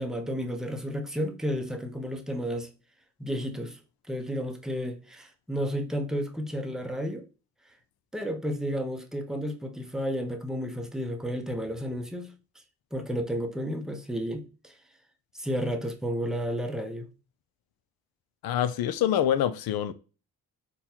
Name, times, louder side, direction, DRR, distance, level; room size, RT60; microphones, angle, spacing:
voice 1, 0.0-2.7 3.2-3.8 4.1-7.3 8.1-12.3 12.9-14.8 15.3-17.1, equal, ahead, 0.7 m, -32 dB
voice 2, 18.4-19.9, left 10 dB, 60° left, 0.5 m, -25 dB
4.0 x 2.2 x 2.8 m
supercardioid pair, 50°, 43 cm